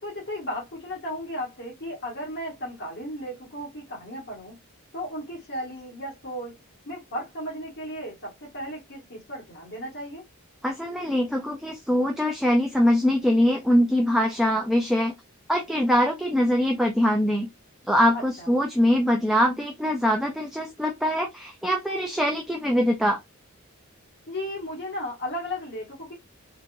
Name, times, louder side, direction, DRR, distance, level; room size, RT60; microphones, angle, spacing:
voice 1, 0.0-4.6 4.9-6.6 6.8-10.2 18.1-18.5 24.3-26.1, equal, 50° left, 1.5 m, -35 dB
voice 2, 10.6-15.2 15.5-17.5 17.9-23.2, equal, ahead, 0.4 m, -23 dB
3.8 x 2.5 x 2.6 m
head